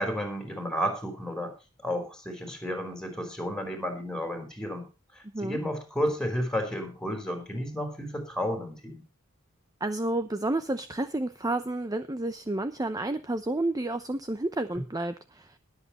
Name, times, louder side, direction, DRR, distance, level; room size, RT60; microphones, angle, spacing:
voice 1, 0.0-1.5 1.8-4.9 5.4-9.0 14.7-14.8, equal, 5° left, 4 dB, 4.7 m, -32 dB
voice 2, 9.8-15.6, right 2 dB, 15° right, 11 dB, 0.7 m, -30 dB
21.0 x 8.1 x 3.1 m, 0.31 s
head